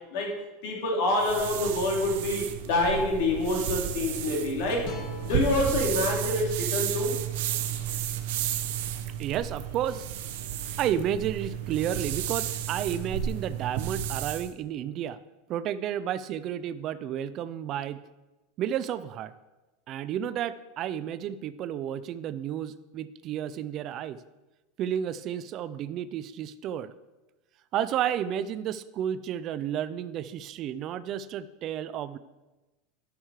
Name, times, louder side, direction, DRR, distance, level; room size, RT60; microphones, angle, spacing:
voice 1, 0.6-4.8 5.2-7.1, left 2 dB, 65° left, 0 dB, 3.1 m, -27 dB
sound 1, 1.2-14.5, right 10 dB, 70° right, 0.9 m, -32 dB
sound 2, 4.8-8.0, left 6 dB, 45° left, 1.5 m, -45 dB
voice 2, 9.2-10.0 10.8-15.2 15.5-18.0 18.6-19.3 19.9-24.2 24.8-26.9 27.7-32.2, right 10 dB, 35° right, 15 dB, 0.4 m, -31 dB
12.5 x 6.5 x 4.8 m, 1.1 s
supercardioid pair, 150°, 0 cm